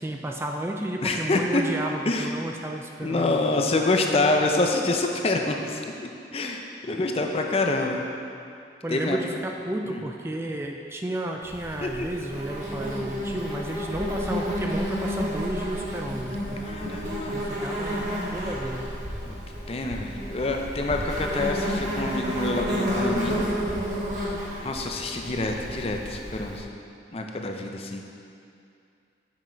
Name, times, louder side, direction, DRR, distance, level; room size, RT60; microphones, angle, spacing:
voice 1, 0.0-3.4 8.8-16.7 17.3-19.0, right 1 dB, 15° right, 2 dB, 0.4 m, -32 dB
voice 2, 1.0-1.6 2.1-2.3 3.0-8.0 8.9-9.2 9.9-10.0 11.8-12.1 16.6-17.3 19.2-19.4 19.7-23.4 24.6-26.7 27.1-28.0, left 2 dB, 35° left, 2 dB, 0.5 m, -26 dB
Insect, 11.4-26.6, equal, 45° right, 1.6 m, -31 dB
7.4 x 5.9 x 4.5 m, 2.5 s
head